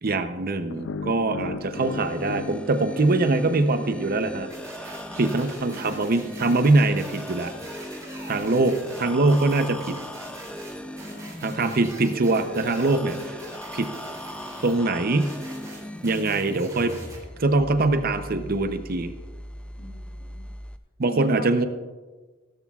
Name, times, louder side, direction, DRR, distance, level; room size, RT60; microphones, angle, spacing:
voice 1, 0.0-4.5 4.8-7.5 8.3-10.0 11.4-13.4 13.7-13.9 14.6-15.4 16.0-17.0 17.4-19.1 21.0-21.7, right 2 dB, 45° right, 9 dB, 0.7 m, -23 dB
sound 1, 0.7-3.8, left 4 dB, 65° left, 0.4 m, -36 dB
sound 2, 1.7-20.8, equal, 5° left, 0.4 m, -38 dB
sound 3, 4.5-14.8 15.2-17.2, right 2 dB, 15° right, 3.3 m, -43 dB
voice 2, 19.8-20.5 21.1-21.5, right 1 dB, 45° left, 2 dB, 1.7 m, -42 dB
16.5 x 13.0 x 2.4 m, 1.3 s
head